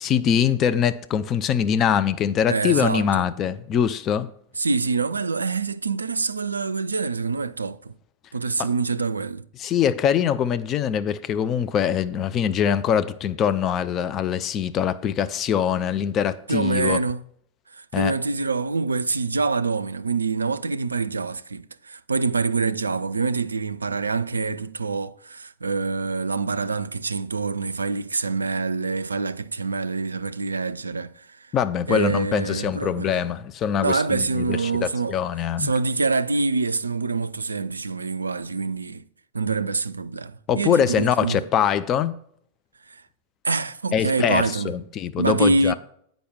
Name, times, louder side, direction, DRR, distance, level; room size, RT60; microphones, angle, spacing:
voice 1, 0.0-4.3 8.6-8.7 9.6-17.0 17.9-18.2 31.5-35.7 40.5-42.1 43.9-45.7, left 8 dB, 30° left, 0.4 m, -23 dB
voice 2, 2.5-3.3 4.6-7.9 8.3-9.5 16.5-17.2 17.7-31.5 31.9-33.2 33.8-35.2 35.6-39.0 39.3-41.4 42.9-43.0 43.4-44.7 45.2-45.7, right 4 dB, 75° right, 0.3 m, -25 dB
8.4 x 5.2 x 6.0 m
figure-of-eight pair, 90°, 0 cm